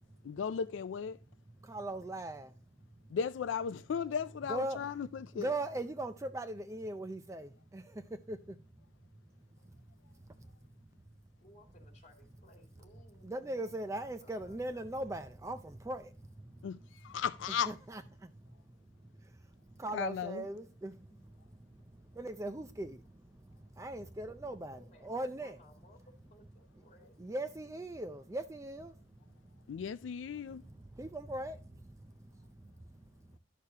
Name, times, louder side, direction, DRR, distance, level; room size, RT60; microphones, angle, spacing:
voice 1, 0.2-1.2 3.1-5.5 16.6-17.7 19.9-20.4 29.7-30.6, left 6 dB, 80° left, 0.3 m, -36 dB
voice 2, 1.6-2.5 4.5-4.8 5.3-8.6 10.4-10.5 13.2-16.7 17.7-18.3 19.7-21.1 21.7-25.6 27.2-28.9 29.7-29.8 30.5-33.0, right 1 dB, 15° right, 0.4 m, -40 dB
voice 3, 11.4-13.7 14.0-15.3 21.1-21.3 24.7-27.5 32.4-32.6, left 1 dB, 40° left, 2.5 m, -62 dB
11.0 x 6.6 x 2.8 m
head